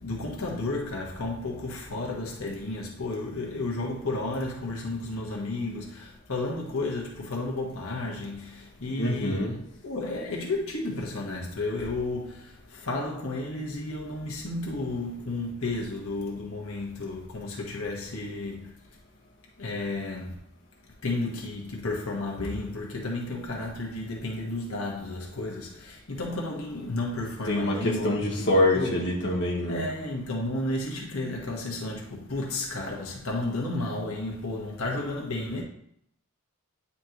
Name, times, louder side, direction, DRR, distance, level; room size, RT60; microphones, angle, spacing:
voice 1, 0.0-18.7 19.6-20.4 21.0-28.1 28.4-29.0 29.7-35.6, left 2 dB, 90° left, 1.3 m, -32 dB
voice 2, 9.0-9.6 27.4-29.8, left 1 dB, 55° left, 1.5 m, -25 dB
9.2 x 4.3 x 2.9 m
head